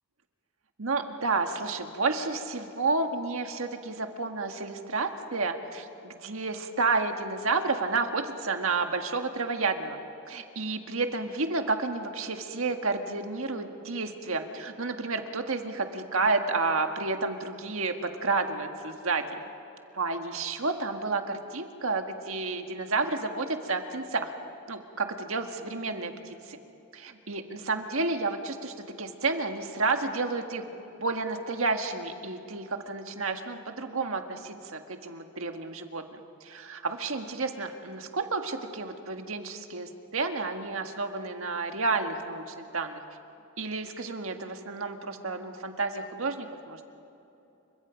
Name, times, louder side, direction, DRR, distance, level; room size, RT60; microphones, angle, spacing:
voice 1, 0.8-10.0 10.3-19.2 19.9-24.3 24.7-26.6 26.9-43.0 43.6-46.8, right 3 dB, 70° right, 5 dB, 1.7 m, -31 dB
29.0 x 25.0 x 5.2 m, 2.9 s
head